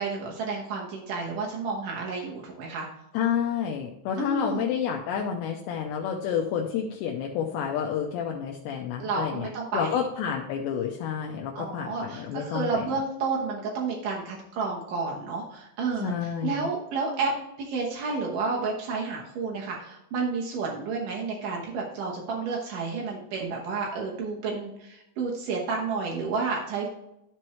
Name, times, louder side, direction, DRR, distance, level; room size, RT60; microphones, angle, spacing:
voice 1, 0.0-2.9 4.2-4.6 9.0-10.0 11.6-17.3 17.6-26.9, right 4 dB, 85° right, -2 dB, 1.8 m, -31 dB
voice 2, 3.1-9.5 9.7-12.9 16.0-16.7, left 8 dB, 80° left, 1 dB, 2.7 m, -29 dB
13.0 x 4.6 x 3.1 m, 0.84 s
omnidirectional pair, 5.6 m